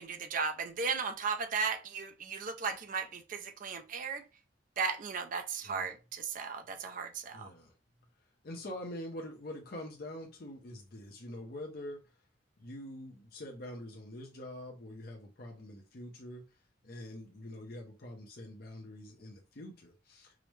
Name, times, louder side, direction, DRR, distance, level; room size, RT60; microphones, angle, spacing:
voice 1, 0.0-4.2 4.8-7.5, right 5 dB, 45° right, 0.4 m, -36 dB
voice 2, 5.6-5.9 7.3-7.7 8.4-12.0 12.6-16.4 16.8-20.3, left 1 dB, 55° left, 0.6 m, -45 dB
4.8 x 2.0 x 3.1 m
head